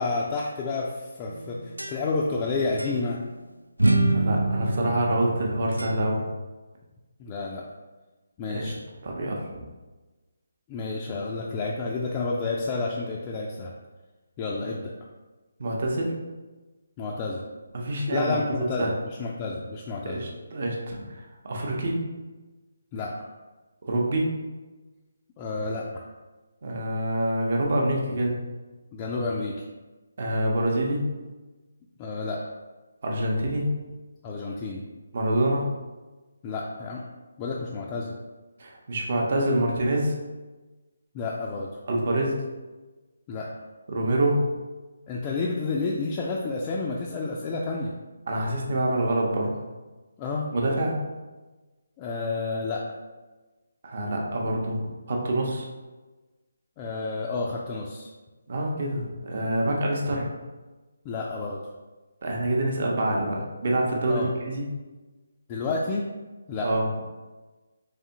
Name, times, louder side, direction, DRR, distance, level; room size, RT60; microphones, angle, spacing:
voice 1, 0.0-3.2 7.2-7.6 8.4-8.8 10.7-13.7 14.4-14.9 17.0-17.4 18.1-18.9 19.2-20.3 22.9-23.1 25.4-25.9 28.9-29.5 32.0-32.4 34.2-34.8 36.4-37.0 37.4-38.1 41.1-41.7 43.3-43.5 45.1-47.9 50.2-50.5 52.0-52.8 56.8-58.1 61.0-61.6 64.1-64.3 65.5-66.0 66.5-66.7, left 3 dB, 25° left, -3 dB, 0.3 m, -30 dB
sound 1, 1.3-2.4 2.8-2.9 3.8-6.3, right 2 dB, 90° right, 0.3 m, -26 dB
voice 2, 4.1-6.2 8.5-8.7 9.0-9.6 15.6-16.2 17.7-18.9 20.0-22.0 23.8-24.3 26.6-28.4 30.2-31.0 33.0-33.6 35.1-35.7 38.6-40.1 41.9-42.3 43.9-44.4 48.3-49.5 50.5-50.9 53.8-55.7 58.5-60.3 62.2-64.6 66.6-66.9, right 1 dB, 50° right, -1 dB, 0.7 m, -26 dB
3.4 x 3.4 x 2.8 m, 1.2 s
figure-of-eight pair, 145°, 0 cm